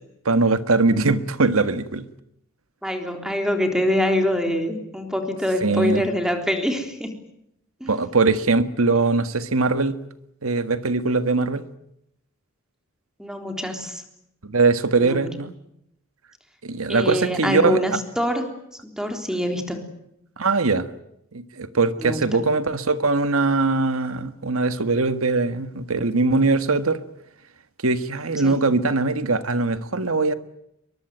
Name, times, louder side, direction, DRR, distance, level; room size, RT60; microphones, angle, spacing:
voice 1, 0.2-2.1 5.6-6.0 7.9-9.9 10.4-11.6 14.4-15.5 16.6-17.8 20.4-20.9 21.3-27.0 27.8-30.3, right 3 dB, 75° right, 12 dB, 1.6 m, -21 dB
voice 2, 2.8-7.1 7.8-8.0 13.2-14.0 15.0-15.3 16.9-18.5 19.0-19.9 22.0-22.4 28.4-28.6, left 1 dB, 5° right, 5 dB, 3.6 m, -25 dB
23.0 x 22.0 x 9.1 m, 0.78 s
head